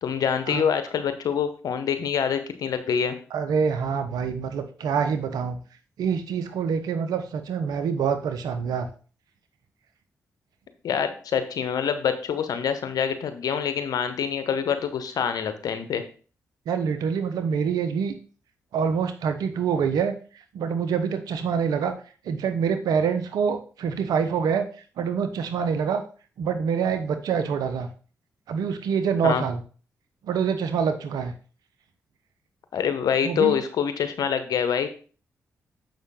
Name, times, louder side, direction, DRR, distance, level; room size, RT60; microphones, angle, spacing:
voice 1, 0.0-3.2 10.8-16.0 29.2-29.4 32.7-34.9, left 7 dB, 75° left, 10 dB, 1.0 m, -25 dB
voice 2, 3.3-5.6 6.0-8.9 16.7-18.1 18.7-20.1 20.5-21.9 22.3-24.6 25.0-26.0 26.4-27.9 28.5-29.6 30.3-31.3 33.2-33.6, right 6 dB, 80° right, 8 dB, 0.9 m, -25 dB
7.3 x 5.6 x 3.7 m, 0.39 s
supercardioid pair, 45°, 7 cm